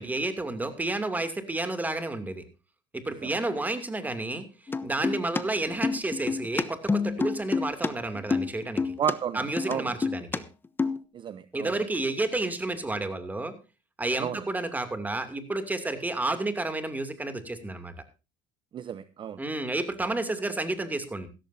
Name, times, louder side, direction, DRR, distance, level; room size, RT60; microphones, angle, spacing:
voice 1, 0.0-2.4 2.9-4.4 4.8-8.9 9.3-10.4 11.5-13.5 14.0-17.9 19.4-21.3, right 2 dB, 15° right, 9 dB, 2.6 m, -31 dB
sound 1, 4.7-5.4 5.7-7.9 8.2-9.1 9.6-10.4 10.6-11.0, left 4 dB, 15° left, 0.9 m, -28 dB
voice 2, 9.0-10.0 11.1-11.7 14.2-14.4 18.7-19.4, right 9 dB, 40° right, 15 dB, 0.8 m, -32 dB
16.0 x 14.0 x 2.7 m, 0.30 s
supercardioid pair, 100°, 12 cm